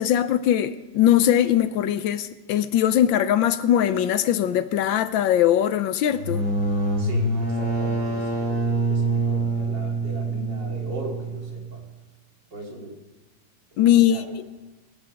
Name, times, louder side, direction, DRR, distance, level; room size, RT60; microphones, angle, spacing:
voice 1, 0.0-6.4 13.8-14.2, left 11 dB, 75° left, 13 dB, 1.4 m, -20 dB
sound 1, 6.1-11.6, right 2 dB, 45° right, 5.6 m, -25 dB
voice 2, 7.0-11.8 12.5-13.0 13.7-14.2, right 2 dB, 65° right, -1 dB, 3.6 m, -38 dB
21.5 x 11.0 x 5.2 m, 1.2 s
omnidirectional pair, 2.2 m